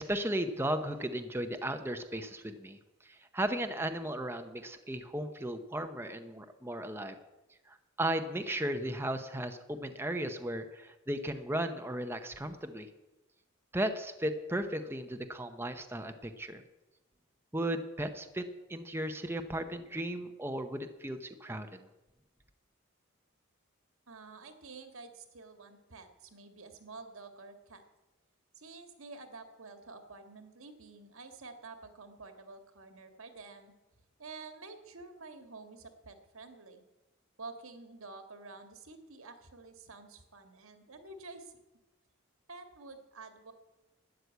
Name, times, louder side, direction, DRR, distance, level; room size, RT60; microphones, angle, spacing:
voice 1, 0.0-7.2 7.7-12.9 13.7-16.6 17.5-21.9, right 1 dB, 10° right, 7 dB, 0.8 m, -35 dB
voice 2, 24.1-27.8 28.6-33.7 34.2-36.8 37.4-41.6 42.5-43.5, right 3 dB, 85° right, 7 dB, 1.8 m, -49 dB
12.5 x 9.6 x 8.2 m, 1.1 s
head